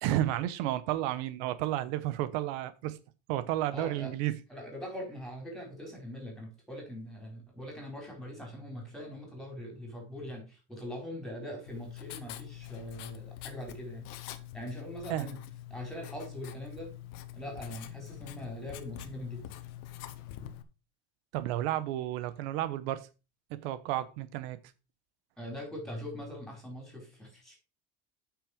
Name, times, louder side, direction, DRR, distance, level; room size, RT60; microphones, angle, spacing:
voice 1, 0.0-3.0 3.3-4.3 15.1-15.3 21.3-23.1 23.6-24.6, right 14 dB, 90° right, 0.9 m, -32 dB
voice 2, 3.7-4.1 4.5-14.1 14.5-15.4 15.7-16.9 17.3-19.4 25.4-27.5, equal, ahead, 4.3 m, -42 dB
Writing, 11.7-20.6, left 13 dB, 75° left, 1.2 m, -45 dB
8.6 x 6.2 x 5.1 m
cardioid pair, 160°, 31 cm